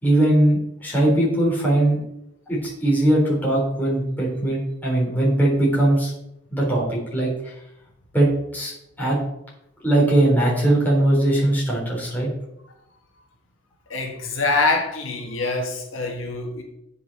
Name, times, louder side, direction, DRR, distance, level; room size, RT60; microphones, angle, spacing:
voice 1, 0.0-2.0 2.5-6.1 6.5-7.5 8.1-8.7 9.0-9.2 9.8-12.3, right 1 dB, 10° left, -5 dB, 3.7 m, -20 dB
voice 2, 13.9-16.6, left 3 dB, 90° left, 2 dB, 1.5 m, -24 dB
9.1 x 5.8 x 4.2 m, 0.80 s
head